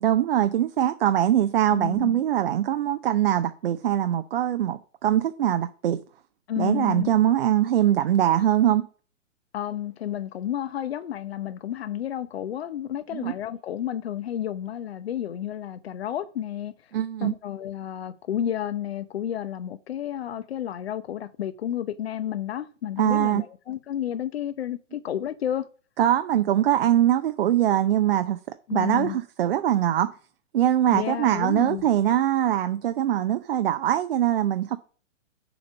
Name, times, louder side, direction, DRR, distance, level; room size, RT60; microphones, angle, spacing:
voice 1, 0.0-6.0 6.6-8.9 13.1-13.3 16.9-17.3 23.0-23.4 26.0-28.4 28.7-30.1 30.5-34.8, right 11 dB, 50° right, 0.7 m, -22 dB
voice 2, 1.7-2.1 6.5-7.1 9.5-16.7 17.2-25.7 28.7-29.2 30.9-31.9, left 10 dB, 50° left, 0.9 m, -31 dB
7.0 x 5.1 x 6.9 m
figure-of-eight pair, 125°, 38 cm